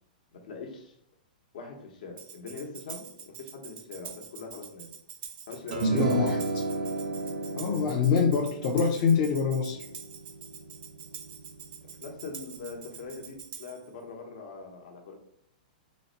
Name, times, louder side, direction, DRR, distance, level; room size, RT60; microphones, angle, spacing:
voice 1, 0.3-1.0 1.5-4.9 5.5-6.5 11.8-15.1, left 4 dB, 70° left, 2 dB, 1.0 m, -42 dB
Tambourine, 2.2-13.9, right 8 dB, 25° right, 0.4 m, -46 dB
sound 1, 5.7-12.2, right 2 dB, 70° right, 0.6 m, -33 dB
voice 2, 5.8-6.4 7.5-9.8, left 6 dB, 35° left, 0 dB, 0.4 m, -25 dB
3.9 x 2.1 x 3.9 m, 0.69 s
hypercardioid pair, 160°, 5 cm